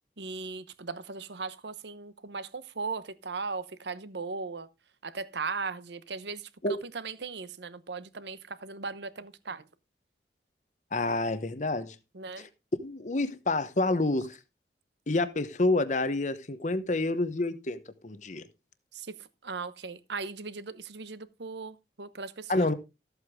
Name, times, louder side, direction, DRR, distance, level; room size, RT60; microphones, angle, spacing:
voice 1, 0.2-4.7 5.0-9.6 12.1-12.5 18.9-22.7, right 4 dB, 75° right, 0.9 m, -38 dB
voice 2, 10.9-11.9 12.4-14.4 15.1-18.4 22.5-22.7, left 2 dB, 45° left, 0.9 m, -28 dB
14.0 x 8.1 x 3.5 m
head